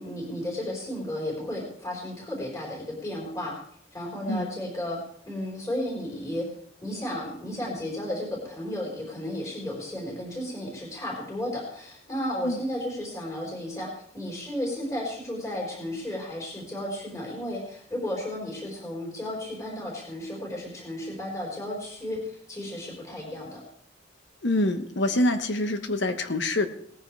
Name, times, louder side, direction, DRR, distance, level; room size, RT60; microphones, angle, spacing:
voice 1, 0.0-3.5 3.9-5.0 5.2-6.4 6.8-22.2 22.5-23.6, left 1 dB, 15° left, -3 dB, 4.7 m, -33 dB
voice 2, 24.4-26.7, left 1 dB, 60° left, 8 dB, 1.3 m, -25 dB
18.5 x 14.0 x 3.4 m, 0.65 s
head